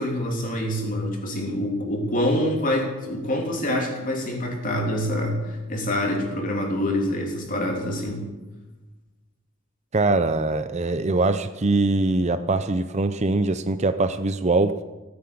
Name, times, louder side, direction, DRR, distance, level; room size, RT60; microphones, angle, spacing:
voice 1, 0.0-8.2, left 1 dB, 40° left, 1 dB, 3.2 m, -26 dB
voice 2, 9.9-14.8, right 2 dB, 30° right, 10 dB, 0.6 m, -22 dB
16.0 x 9.6 x 8.7 m, 1.1 s
head